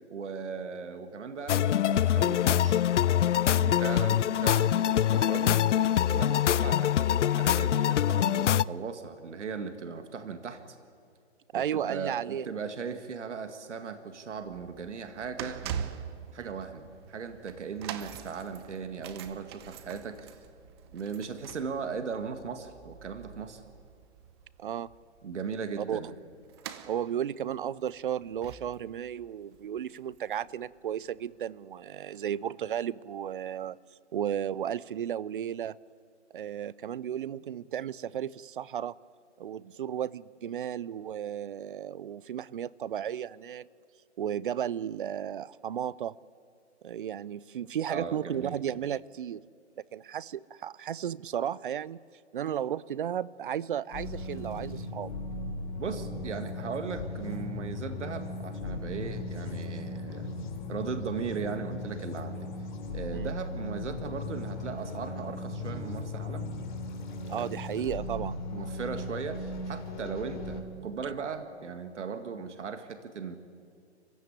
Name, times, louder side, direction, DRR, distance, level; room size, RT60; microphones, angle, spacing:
voice 1, 0.1-2.8 3.5-5.6 6.0-10.6 11.5-15.6 16.3-20.3 20.9-23.6 25.2-26.1 47.9-48.6 55.8-60.3 60.7-62.5 62.9-66.5 68.5-73.4, right 5 dB, 75° right, 2.0 m, -38 dB
sound 1, 1.5-8.6, left 10 dB, 80° left, 0.5 m, -24 dB
voice 2, 11.5-12.5 16.4-16.6 24.6-24.9 25.8-26.0 26.9-33.8 34.1-35.8 36.3-38.9 39.4-43.7 44.2-46.1 46.8-49.4 49.9-52.0 52.3-55.1 63.1-63.3 67.3-68.4, right 9 dB, 45° right, 0.5 m, -34 dB
sound 2, 14.3-30.7 30.9-31.2 31.9-32.0, right 8 dB, 20° right, 0.8 m, -44 dB
sound 3, 53.9-70.6, left 2 dB, 40° left, 3.2 m, -37 dB
25.5 x 15.5 x 9.9 m
hypercardioid pair, 150°, 35 cm